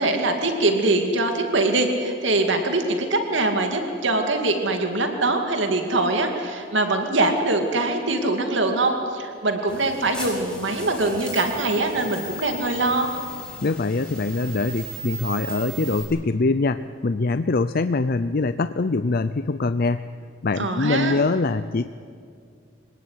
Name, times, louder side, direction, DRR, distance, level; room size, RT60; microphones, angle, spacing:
voice 1, 0.0-13.1 20.6-21.2, right 2 dB, 70° right, 4 dB, 2.4 m, -23 dB
sound 1, 9.7-16.0, right 1 dB, 5° left, 6.2 m, -37 dB
voice 2, 13.6-20.0 20.4-21.9, left 3 dB, 50° left, 12 dB, 0.6 m, -23 dB
26.0 x 18.5 x 9.6 m, 2.3 s
head